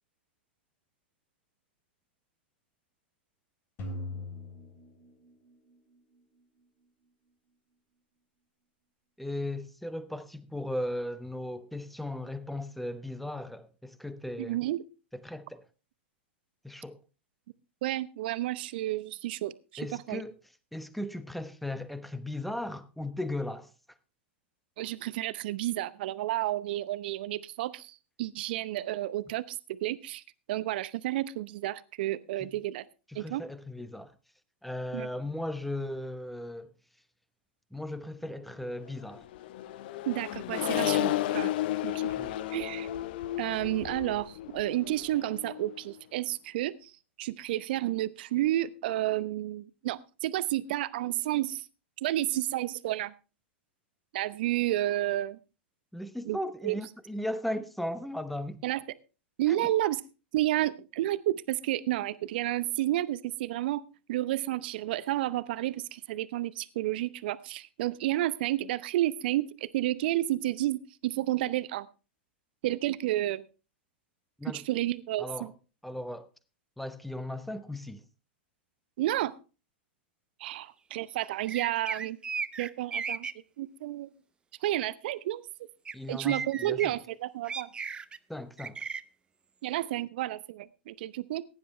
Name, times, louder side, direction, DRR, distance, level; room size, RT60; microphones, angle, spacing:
sound 1, 3.8-6.0, left 2 dB, 35° left, 3.0 m, -40 dB
voice 1, 9.2-14.6 15.1-15.6 16.6-17.0 19.8-20.4 20.7-23.7 32.4-32.5 33.1-34.2 34.6-36.7 37.7-39.3 42.2-42.4 55.9-58.6 59.5-59.9 74.4-74.6 75.2-75.5 75.8-76.3 76.8-78.1 85.9-87.0 88.3-88.8, left 1 dB, ahead, 0.9 m, -37 dB
voice 2, 14.4-14.8 17.8-19.8 20.1-20.2 24.8-30.2 30.5-32.8 33.1-33.4 34.9-35.1 40.1-41.5 41.8-42.1 42.5-42.9 43.4-46.9 47.2-51.7 52.0-53.1 54.1-55.4 56.2-56.4 56.6-56.8 58.6-58.8 59.4-60.0 60.3-63.8 64.1-71.9 72.6-73.4 74.5-75.5 79.0-79.4 80.4-82.2 82.6-83.3 83.6-84.1 84.6-85.4 86.1-87.7 89.6-91.4, right 15 dB, 60° right, 0.7 m, -31 dB
Accelerating revving vroom, 39.1-45.8, left 14 dB, 60° left, 0.7 m, -33 dB
sound 2, 81.5-83.3 85.9-86.0 86.2-86.9 87.5-88.2 88.6-89.0, right 5 dB, 15° right, 0.6 m, -35 dB
16.0 x 10.0 x 3.2 m
hypercardioid pair, 100°, 6 cm